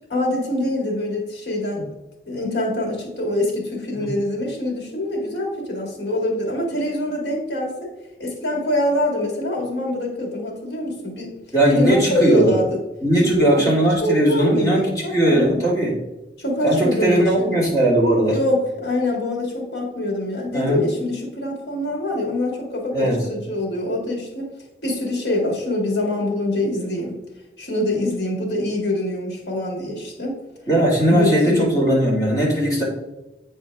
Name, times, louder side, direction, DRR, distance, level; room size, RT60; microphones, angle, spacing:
voice 1, 0.1-1.8 2.3-7.9 8.2-11.3 11.7-12.8 13.2-13.7 14.0-15.6 16.4-17.6 18.3-24.5 24.8-27.2 27.6-30.4 31.1-31.7, left 1 dB, 70° left, -1 dB, 1.9 m, -24 dB
voice 2, 11.5-12.6 13.0-16.0 16.6-18.4 20.5-20.8 22.9-23.2 30.7-32.8, right 1 dB, 20° left, -5 dB, 2.0 m, -18 dB
8.5 x 4.4 x 3.5 m, 1.0 s
head